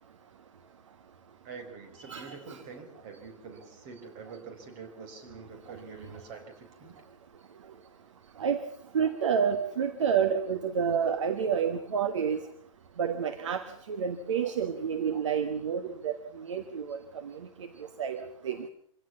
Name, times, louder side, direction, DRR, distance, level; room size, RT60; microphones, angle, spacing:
voice 1, 1.4-7.0, right 5 dB, 40° right, 7 dB, 5.0 m, -46 dB
voice 2, 2.0-2.6 8.4-8.6 8.9-12.4 13.0-18.7, right 7 dB, 60° right, 10 dB, 1.4 m, -30 dB
25.0 x 17.0 x 7.3 m, 0.67 s
figure-of-eight pair, 105°, 17 cm